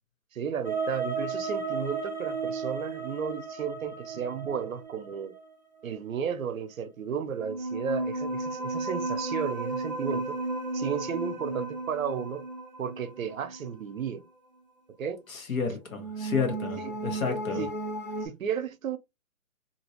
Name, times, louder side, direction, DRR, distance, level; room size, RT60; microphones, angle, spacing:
voice 1, 0.3-5.3 5.8-10.4 10.7-12.4 12.8-14.2 15.0-15.2 16.8-16.9 17.6-17.7 18.2-19.0, right 7 dB, 70° right, 0.7 m, -33 dB
sound 1, 0.6-5.4 7.4-13.7 15.9-18.3, right 3 dB, 35° right, 0.4 m, -34 dB
voice 2, 15.3-17.6, left 5 dB, 70° left, 1.3 m, -31 dB
2.9 x 2.7 x 2.8 m
hypercardioid pair, 175°, 43 cm